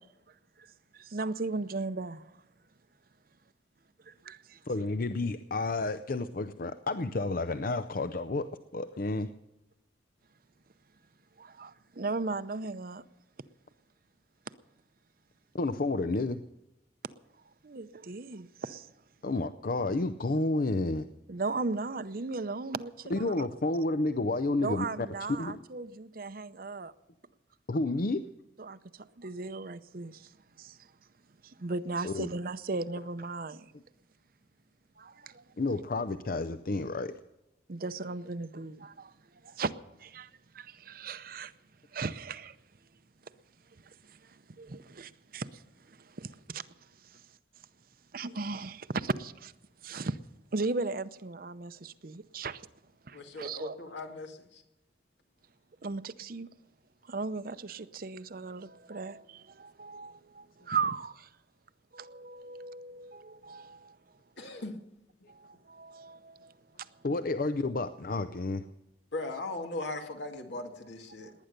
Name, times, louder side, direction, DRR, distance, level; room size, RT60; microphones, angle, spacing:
voice 1, 0.9-2.2 4.1-4.6 11.4-13.0 17.6-18.9 21.3-23.5 24.6-26.9 28.6-30.3 30.6-30.8 31.4-33.7 35.0-35.4 37.7-39.1 39.4-39.7 40.0-40.3 40.5-41.5 41.9-42.6 43.8-46.7 47.0-47.2 48.1-49.5 49.8-50.2 50.5-52.6 53.1-53.9 55.8-56.5 57.1-61.3 61.9-64.0 64.4-64.5 65.3-66.5 66.8-66.9 71.2-71.3, right 3 dB, 50° right, 0.7 m, -37 dB
voice 2, 4.7-9.3 15.5-16.4 19.2-21.1 23.1-25.1 25.4-25.6 27.7-28.3 32.0-32.3 35.6-37.1 67.0-68.6, left 2 dB, 50° left, 0.6 m, -30 dB
voice 3, 53.1-54.6 64.4-64.7 69.1-71.3, left 2 dB, 80° left, 2.3 m, -39 dB
19.0 x 10.5 x 6.7 m
head